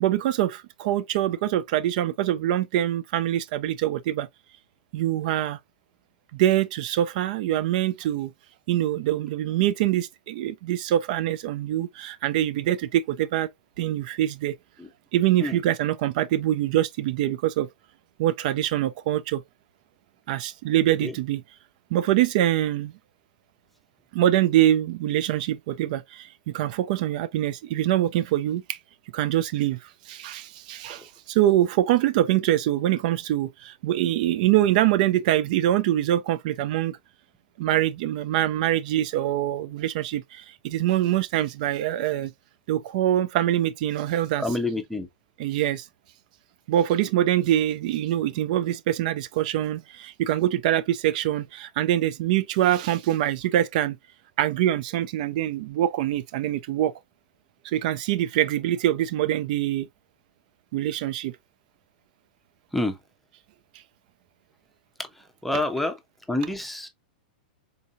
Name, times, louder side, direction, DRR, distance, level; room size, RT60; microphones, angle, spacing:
voice 1, 0.0-4.3 4.9-5.6 6.3-8.3 8.7-13.5 13.8-14.5 15.1-17.7 18.2-19.4 20.3-21.4 21.9-22.9 24.1-28.8 29.1-29.8 30.1-37.0 37.6-42.3 42.7-44.4 45.4-45.9 46.7-54.0 54.4-56.9 57.6-59.9 60.7-61.3, right 12 dB, 55° right, 0.4 m, -24 dB
voice 2, 44.4-45.1 62.7-63.0 65.4-66.0 66.3-66.9, left 2 dB, ahead, 0.7 m, -27 dB
3.9 x 2.7 x 2.5 m
hypercardioid pair, 125°, 5 cm